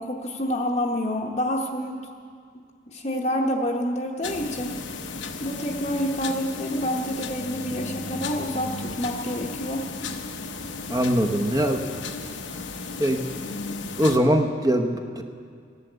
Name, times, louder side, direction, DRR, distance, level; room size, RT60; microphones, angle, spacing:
voice 1, 0.0-2.1 2.9-4.8 5.4-9.8, equal, 35° left, -1 dB, 1.0 m, -28 dB
sound 1, 4.2-14.2, left 4 dB, 85° left, 1.1 m, -35 dB
voice 2, 10.9-11.8 13.0-13.2 14.0-15.2, equal, 20° right, 5 dB, 0.9 m, -22 dB
16.0 x 11.0 x 8.0 m, 2.2 s
head